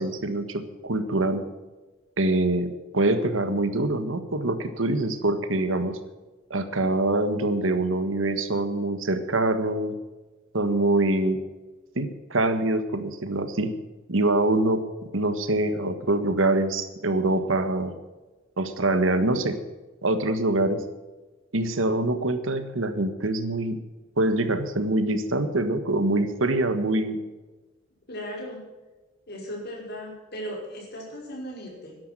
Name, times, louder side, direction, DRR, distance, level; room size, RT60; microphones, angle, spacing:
voice 1, 0.0-1.4 2.2-6.0 6.5-10.0 10.5-11.4 11.9-13.7 14.1-14.8 15.1-17.9 18.6-19.5 20.0-20.8 21.5-23.8 24.2-27.2, right 2 dB, 85° right, 9 dB, 1.6 m, -24 dB
voice 2, 28.1-28.6 29.3-32.0, equal, 55° left, -1 dB, 5.6 m, -37 dB
13.0 x 11.5 x 6.2 m, 1.2 s
head